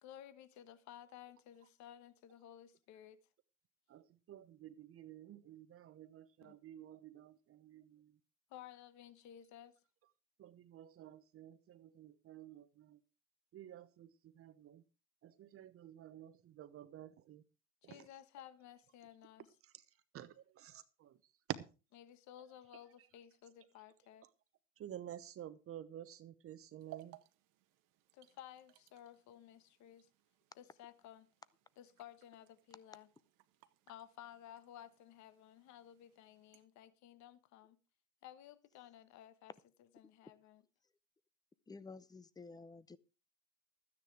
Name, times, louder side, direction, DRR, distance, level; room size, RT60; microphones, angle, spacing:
voice 1, 0.0-3.2 6.4-6.6 8.5-9.8 17.8-19.5 22.0-24.3 28.1-30.1 30.5-31.3 31.8-33.1 33.9-37.8 38.2-39.5 39.9-40.6, left 11 dB, 45° left, 1.3 m, -56 dB
voice 2, 3.9-8.1 10.4-13.0 13.5-14.8 15.2-17.4 17.8-18.1 19.6-19.8 20.1-21.2 21.5-21.6 24.8-27.2, right 11 dB, 35° right, 1.0 m, -51 dB
Opening a small bottle filled with liquid and shaking it., 26.8-36.7, right 15 dB, 50° right, 1.3 m, -62 dB
voice 3, 41.7-43.0, left 4 dB, 10° left, 0.6 m, -52 dB
12.5 x 9.7 x 4.8 m
hypercardioid pair, 100°, 40 cm